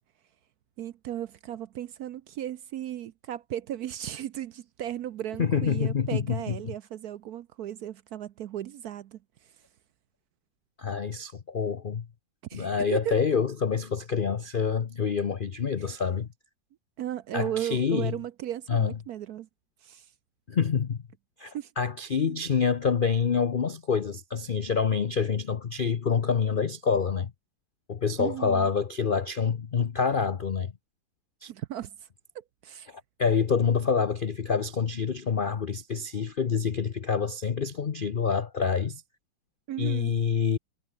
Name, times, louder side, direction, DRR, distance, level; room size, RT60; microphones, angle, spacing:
voice 1, 0.8-9.2 12.5-13.2 17.0-19.5 19.8-20.1 21.5-21.7 22.2-22.4 28.2-28.7 31.5-31.9 32.3-32.9 39.7-40.1, right 11 dB, 70° right, 1.0 m, -35 dB
voice 2, 5.4-6.7 10.8-12.1 12.5-16.3 17.3-18.1 18.7-18.9 20.5-21.0 21.4-27.3 27.9-30.7 31.4-31.5 32.9-39.0 39.8-40.6, left 6 dB, 75° left, 0.4 m, -27 dB
omnidirectional pair, 2.1 m